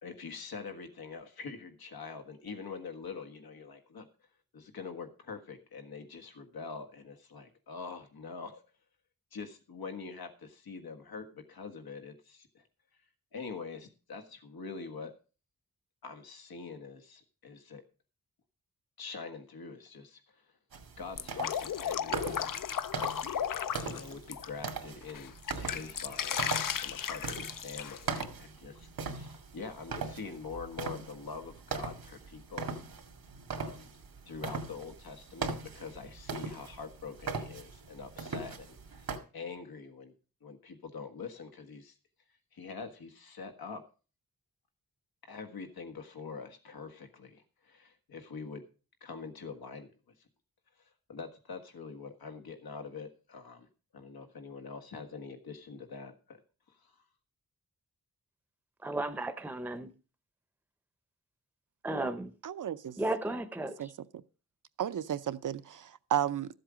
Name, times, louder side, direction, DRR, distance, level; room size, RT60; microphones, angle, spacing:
voice 1, 0.0-4.1 4.5-8.6 9.3-12.6 13.3-15.1 16.0-17.8 19.0-20.4 21.0-22.7 23.7-26.4 26.8-32.7 33.5-33.9 34.3-40.1 40.4-41.9 42.5-43.8 45.2-48.7 49.0-49.9 50.8-53.7 53.9-56.4 56.7-56.9, left 5 dB, 90° left, 1.6 m, -44 dB
sound 1, 20.7-39.2, right 4 dB, 90° right, 2.1 m, -40 dB
Drip, 21.2-24.7 25.1-28.2, left 8 dB, 65° left, 0.6 m, -35 dB
voice 2, 58.8-59.9 61.8-62.3 63.0-63.9, right 2 dB, 5° right, 0.7 m, -34 dB
voice 3, 62.4-62.9 63.8-63.9 64.8-66.5, right 10 dB, 60° right, 0.6 m, -33 dB
13.5 x 7.8 x 5.0 m
wide cardioid pair, 140°, 35 cm